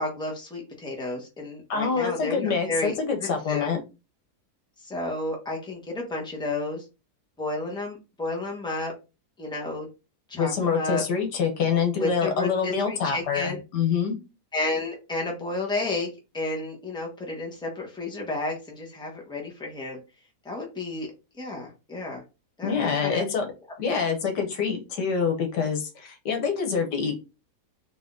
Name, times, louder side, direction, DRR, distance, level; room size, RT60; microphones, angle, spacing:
voice 1, 0.0-2.9 3.2-3.7 4.8-6.8 7.4-8.9 9.4-9.9 10.3-11.0 12.0-13.6 14.5-20.0 20.4-21.1 21.4-22.2 22.6-23.2, left 2 dB, 5° left, 0 dB, 1.1 m, -31 dB
voice 2, 1.7-3.8 10.4-14.2 22.6-23.5 23.8-27.1, left 6 dB, 85° left, 3 dB, 1.7 m, -26 dB
4.0 x 3.0 x 3.7 m, 0.28 s
omnidirectional pair, 1.7 m